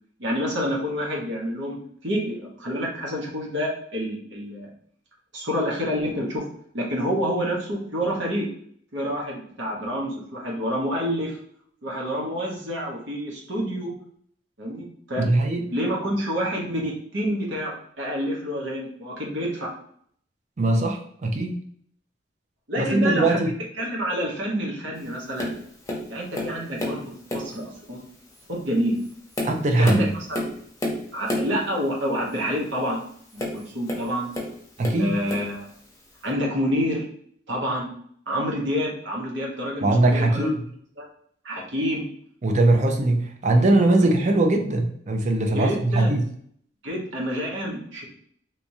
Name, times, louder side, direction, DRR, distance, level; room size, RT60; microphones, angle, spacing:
voice 1, 0.2-4.7 5.3-6.5 6.7-8.5 8.9-11.4 11.8-13.9 14.6-15.2 15.7-19.7 22.7-23.4 23.8-25.5 26.1-28.0 28.5-29.0 29.8-30.5 31.1-33.0 33.3-34.3 35.0-35.7 36.2-37.1 37.5-37.9 38.3-40.5 41.0-41.1 41.4-42.1 44.0-44.1 45.5-46.2 46.8-48.0, equal, 85° right, -2 dB, 1.1 m, -28 dB
voice 2, 15.2-15.7 20.6-21.6 22.8-23.5 29.4-30.1 34.8-35.2 39.8-40.7 42.4-46.3, right 2 dB, 40° right, 4 dB, 0.5 m, -21 dB
Tap, 25.4-25.6 25.9-27.0 27.3-27.6 28.3-28.4 29.0-31.6 33.3-34.5 34.8-35.5 36.3-36.4, left 1 dB, 20° left, 0.7 m, -30 dB
3.4 x 3.0 x 2.7 m, 0.64 s
head